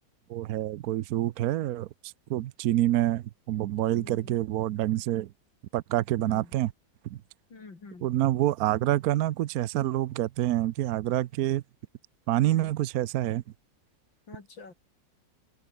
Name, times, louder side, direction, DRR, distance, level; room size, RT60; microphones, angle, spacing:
voice 1, 0.3-5.3 5.7-6.7 7.0-7.2 8.0-11.6 12.3-13.4, right 14 dB, 70° right, 0.9 m, -27 dB
voice 2, 3.9-4.4 6.1-6.5 7.5-8.1 12.4-12.7 14.3-14.7, left 4 dB, 90° left, 4.9 m, -46 dB
omnidirectional pair, 2.0 m